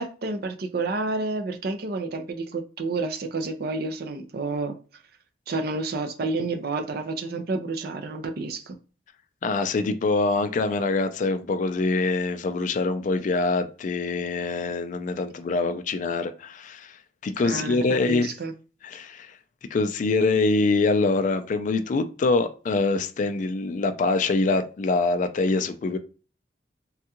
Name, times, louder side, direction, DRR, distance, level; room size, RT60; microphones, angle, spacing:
voice 1, 0.0-4.8 5.5-8.8 17.4-18.5, right 3 dB, 55° right, 0.5 m, -30 dB
voice 2, 9.4-18.3 18.8-26.0, left 3 dB, 45° left, 0.3 m, -24 dB
3.5 x 2.3 x 2.8 m
head